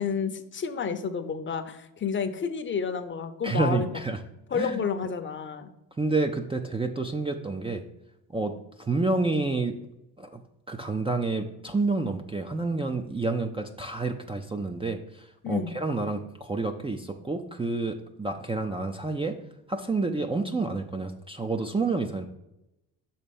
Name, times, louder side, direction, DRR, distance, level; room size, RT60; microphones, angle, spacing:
voice 1, 0.0-3.9 4.5-5.7 15.4-15.7, left 6 dB, 30° left, 8 dB, 0.7 m, -30 dB
voice 2, 3.4-4.2 4.5-4.8 6.0-7.8 8.3-8.5 8.9-9.7 10.2-10.4 10.7-15.0 15.5-19.4 19.7-22.3, right 3 dB, 15° right, 5 dB, 0.5 m, -29 dB
6.0 x 4.3 x 5.3 m, 0.90 s
supercardioid pair, 75°, 42 cm